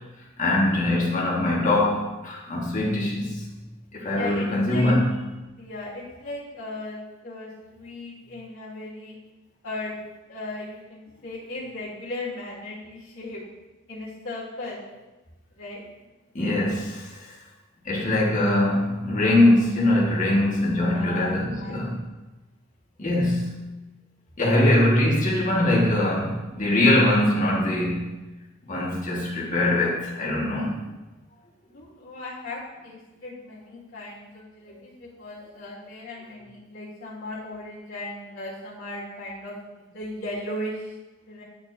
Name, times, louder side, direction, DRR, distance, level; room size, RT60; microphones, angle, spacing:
voice 1, 0.4-3.4 3.9-5.1 16.4-17.1 17.9-22.0 23.0-23.5 24.4-28.0 28.7-30.8, left 1 dB, 35° left, -4 dB, 1.6 m, -22 dB
voice 2, 4.1-4.9 5.6-9.2 9.6-10.0 10.3-13.4 13.9-14.8 15.6-15.8 20.9-21.8 24.4-24.9 31.7-40.9 41.3-41.4, left 2 dB, 75° left, -8 dB, 2.1 m, -37 dB
10.0 x 4.5 x 2.7 m, 1.1 s
head